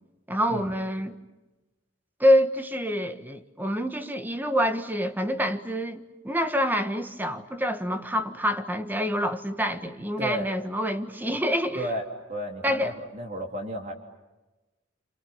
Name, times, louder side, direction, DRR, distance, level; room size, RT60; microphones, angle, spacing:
voice 1, 0.3-1.2 2.2-11.9 12.6-12.9, equal, 10° right, 1.5 m, -26 dB
voice 2, 10.2-10.5 11.7-12.0 12.3-13.9, right 1 dB, 40° right, 3.2 m, -32 dB
29.0 x 28.0 x 7.1 m
head